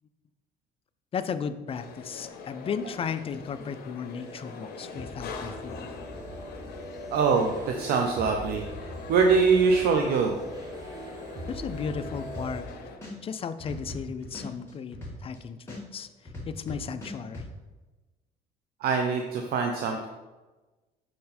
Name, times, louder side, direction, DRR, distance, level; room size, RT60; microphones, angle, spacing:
voice 1, 1.1-5.9 11.5-12.7 13.2-17.4, left 6 dB, 35° left, 11 dB, 0.4 m, -35 dB
sound 1, 1.7-13.0, left 5 dB, 70° left, 0.9 m, -43 dB
sound 2, 4.2-12.6, equal, 25° right, 1.4 m, -41 dB
voice 2, 7.1-10.4 18.8-20.1, right 5 dB, 65° right, 2 dB, 0.6 m, -24 dB
sound 3, 12.3-12.7 13.0-15.4 15.7-17.5, left 1 dB, 15° left, 2.2 m, -40 dB
6.4 x 4.3 x 4.2 m, 1.2 s
cardioid pair, 110°, 17 cm